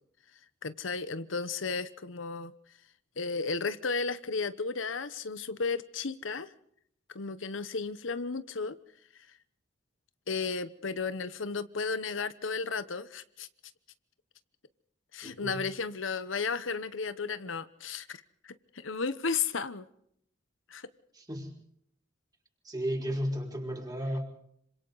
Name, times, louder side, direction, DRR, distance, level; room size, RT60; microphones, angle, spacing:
voice 1, 0.6-2.5 3.2-6.5 7.1-8.8 10.3-13.5 15.1-18.2 18.4-19.9 20.7-20.9, left 4 dB, 85° left, 13 dB, 1.0 m, -34 dB
voice 2, 15.2-15.6 21.1-21.5 22.6-24.2, equal, 20° right, 0 dB, 5.4 m, -34 dB
27.0 x 25.5 x 4.1 m, 0.69 s
head